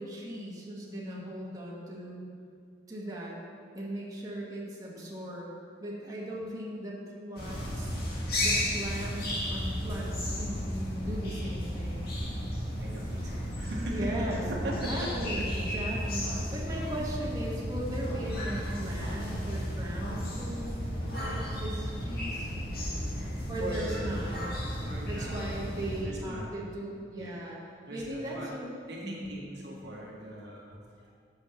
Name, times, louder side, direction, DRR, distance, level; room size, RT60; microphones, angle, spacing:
voice 1, 0.0-2.2 2.9-3.4 3.7-5.5 5.8-8.0 8.4-12.1 13.9-22.5 23.5-24.6 25.0-27.6 27.9-28.7 29.0-29.3, right 1 dB, 20° right, -5 dB, 1.7 m, -38 dB
indoor aviary, 7.4-26.0, equal, 55° left, 1.9 m, -33 dB
voice 2, 12.4-14.2 14.5-15.4 21.0-21.1 22.3-24.2 24.8-25.7 26.0-26.6 27.2-27.3 27.8-28.5 28.9-31.1, right 1 dB, 65° right, -3 dB, 1.4 m, -40 dB
8.2 x 6.5 x 5.8 m, 2.3 s
head